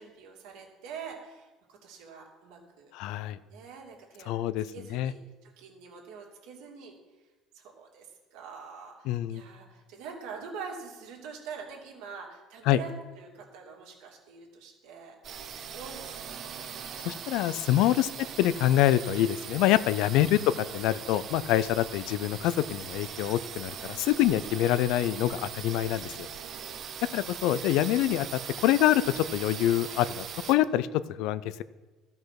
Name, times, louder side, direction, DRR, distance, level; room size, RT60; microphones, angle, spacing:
voice 1, 0.0-2.9 3.5-4.4 4.7-7.0 7.5-15.1 15.7-17.2 18.0-18.1 21.6-21.8 26.4-26.9, right 5 dB, 75° right, -1 dB, 2.6 m, -45 dB
voice 2, 2.9-3.4 4.3-4.7 4.9-5.1 9.1-9.4 12.7-12.8 17.0-18.1 18.4-26.3 27.1-30.9 31.2-31.4, left 13 dB, 70° left, 16 dB, 0.4 m, -25 dB
sound 1, 15.2-30.6, right 7 dB, 45° right, 0.9 m, -40 dB
13.0 x 5.5 x 5.9 m, 1.2 s
cardioid pair, 125°, 0 cm